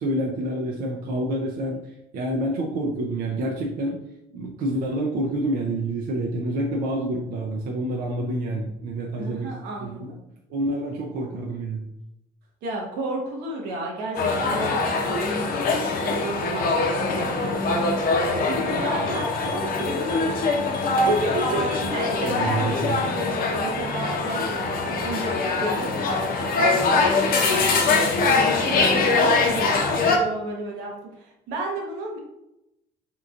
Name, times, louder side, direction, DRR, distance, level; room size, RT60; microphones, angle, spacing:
voice 1, 0.0-1.8 2.1-4.0 4.3-9.5 9.8-10.1 10.5-11.9 22.2-23.0, right 1 dB, 60° right, 0 dB, 0.6 m, -28 dB
voice 2, 9.2-10.2 12.6-20.1 21.0-32.2, right 1 dB, 85° right, -1 dB, 1.0 m, -32 dB
sound 1, 14.2-30.2, left 3 dB, 60° left, 0.6 m, -23 dB
3.7 x 2.9 x 2.5 m, 0.87 s
cardioid pair, 110°, 17 cm